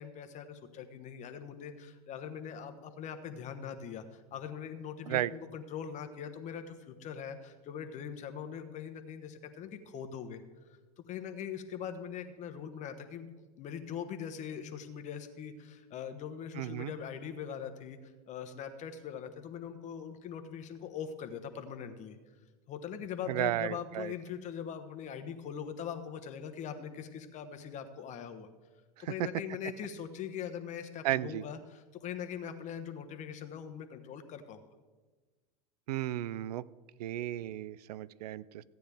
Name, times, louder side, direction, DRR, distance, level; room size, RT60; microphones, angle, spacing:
voice 1, 0.0-10.4 10.7-10.8 11.1-13.3 13.6-22.2 22.7-28.5 29.0-34.7, left 8 dB, 35° left, 8 dB, 1.1 m, -42 dB
voice 2, 16.6-16.9 23.3-24.1 29.0-29.1 31.0-31.4 35.9-36.6 37.0-38.6, right 14 dB, 75° right, 20 dB, 0.4 m, -34 dB
15.0 x 9.3 x 3.5 m, 1.3 s
hypercardioid pair, 105°, 20 cm